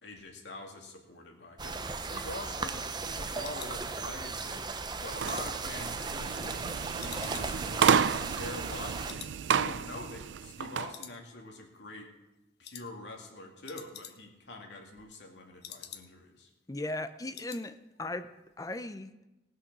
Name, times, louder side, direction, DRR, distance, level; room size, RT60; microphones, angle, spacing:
voice 1, 0.0-4.7 5.0-6.7 7.0-8.0 8.3-12.1 12.6-16.5, left 2 dB, 80° left, 1 dB, 2.3 m, -45 dB
sound 1, 1.6-9.1, right 4 dB, 25° right, 0.6 m, -37 dB
sound 2, 2.7-4.5 4.9-6.6 7.0-8.8 9.1-9.4 9.7-9.8 10.2-10.7 10.9-11.7 12.0-12.3 12.6-12.9 13.2-13.3 13.5-14.5 14.8-16.4 16.7-16.8 17.1-17.7 18.0-18.2 18.5-18.6, left 9 dB, 65° left, 0.9 m, -49 dB
sound 3, 5.1-10.9, right 7 dB, 90° right, 0.4 m, -31 dB
voice 2, 16.7-18.3 18.6-19.1, left 2 dB, 20° left, 10 dB, 0.6 m, -37 dB
18.5 x 6.4 x 6.1 m, 0.98 s
head